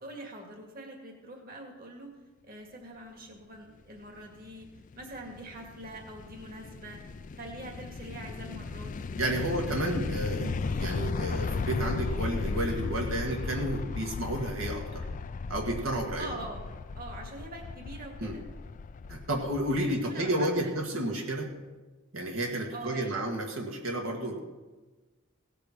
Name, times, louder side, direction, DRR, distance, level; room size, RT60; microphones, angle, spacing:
voice 1, 0.0-2.2 2.4-4.7 4.9-7.0 7.3-9.7 16.1-16.7 17.0-18.4 19.9-20.8 22.7-23.2, right 1 dB, 45° right, 1 dB, 2.2 m, -44 dB
sound 1, 4.4-19.9, left 4 dB, 40° left, 0.4 m, -36 dB
voice 2, 9.2-15.1 15.5-16.3 18.2-18.4 19.1-21.5 22.1-24.4, right 1 dB, 85° right, 1 dB, 1.9 m, -31 dB
17.5 x 6.8 x 6.1 m, 1.2 s
head